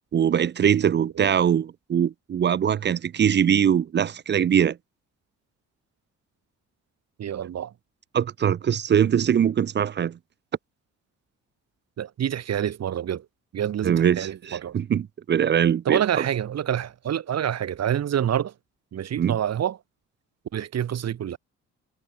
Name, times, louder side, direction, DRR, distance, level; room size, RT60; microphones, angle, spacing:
voice 1, 0.1-4.8 8.1-10.2 13.8-16.3 19.2-19.4, right 8 dB, 35° right, 0.5 m, -22 dB
voice 2, 7.2-7.7 12.0-13.3 13.5-14.8 15.9-18.5 18.9-19.8 20.5-21.4, right 10 dB, 60° right, 1.9 m, -27 dB
cardioid pair, 90°, 30 cm